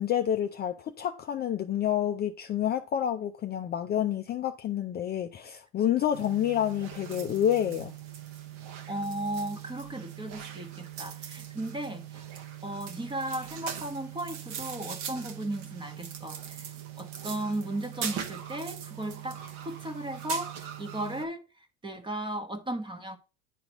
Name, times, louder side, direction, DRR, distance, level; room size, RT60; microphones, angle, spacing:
voice 1, 0.0-7.9, left 10 dB, 30° left, 0.5 m, -28 dB
sound 1, 6.1-21.3, right 9 dB, 70° right, 1.2 m, -41 dB
voice 2, 8.9-12.2 12.6-21.4 21.8-23.2, right 1 dB, 15° right, 1.0 m, -36 dB
10.0 x 3.8 x 3.0 m
supercardioid pair, 105°, 35 cm